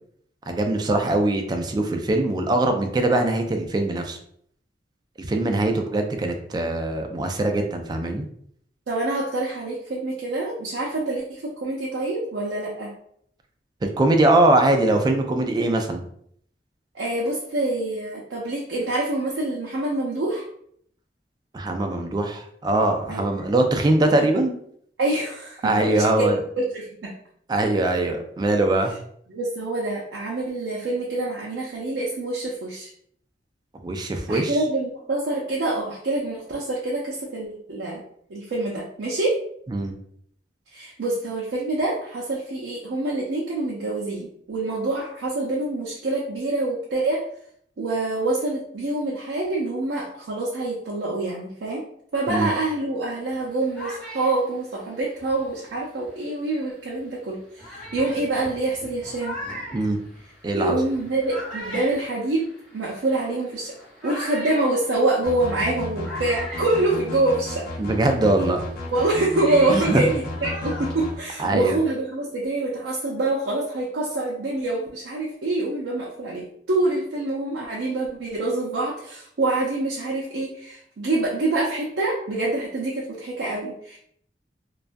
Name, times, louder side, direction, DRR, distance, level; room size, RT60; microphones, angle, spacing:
voice 1, 0.5-4.2 5.2-8.2 13.8-16.0 21.5-24.6 25.6-26.4 27.5-28.9 33.8-34.6 39.7-39.9 52.3-52.5 59.7-60.0 60.4-60.8 67.8-68.6 69.7-70.1 71.4-71.8, right 2 dB, 25° right, 4 dB, 0.3 m, -22 dB
voice 2, 8.9-12.9 16.9-20.5 23.1-23.4 24.2-24.3 25.0-27.1 29.3-32.9 34.1-38.0 38.3-39.4 40.7-47.2 47.8-51.8 52.1-59.4 60.5-62.5 62.7-63.7 64.0-67.7 68.9-84.0, right 2 dB, 85° right, -4 dB, 0.5 m, -26 dB
sound 1, 53.3-56.3 57.0-57.1 57.6-67.6 67.9-71.6, equal, 5° left, 0.8 m, -40 dB
sound 2, 65.2-71.1, left 2 dB, 60° left, 0.6 m, -33 dB
2.3 x 2.2 x 2.5 m, 0.66 s
head